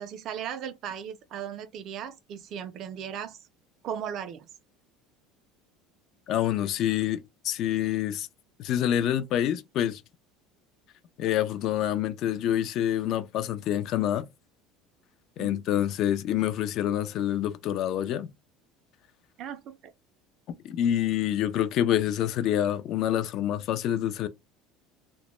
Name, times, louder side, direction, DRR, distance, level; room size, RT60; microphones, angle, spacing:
voice 1, 0.0-3.4 3.8-4.5 15.4-15.6 19.4-19.9, right 9 dB, 50° right, 0.4 m, -37 dB
voice 2, 6.3-8.3 8.6-10.0 11.2-14.3 15.4-18.3 20.6-24.3, left 11 dB, 55° left, 0.3 m, -27 dB
2.1 x 2.0 x 3.0 m
supercardioid pair, 130°, 0 cm